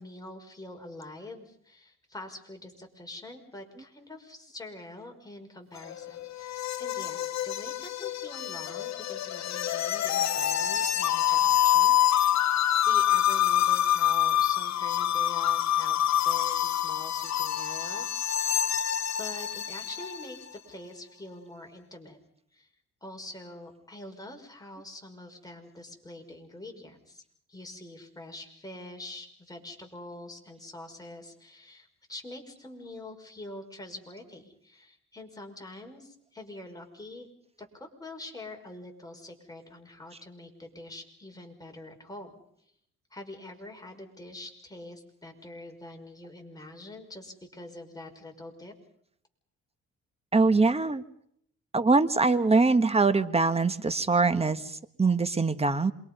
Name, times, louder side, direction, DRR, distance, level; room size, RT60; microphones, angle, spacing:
voice 1, 0.0-18.5 19.2-22.2 22.5-22.7 23.0-27.2 27.5-37.3 37.6-42.4 43.1-48.7, left 1 dB, 10° left, 2 dB, 6.0 m, -45 dB
sound 1, 5.8-20.4, left 11 dB, 60° left, 1.2 m, -26 dB
voice 2, 50.3-51.0 51.7-55.9, right 3 dB, 20° right, 10 dB, 1.6 m, -23 dB
27.5 x 23.5 x 5.7 m, 0.70 s
cardioid pair, 90°, 30 cm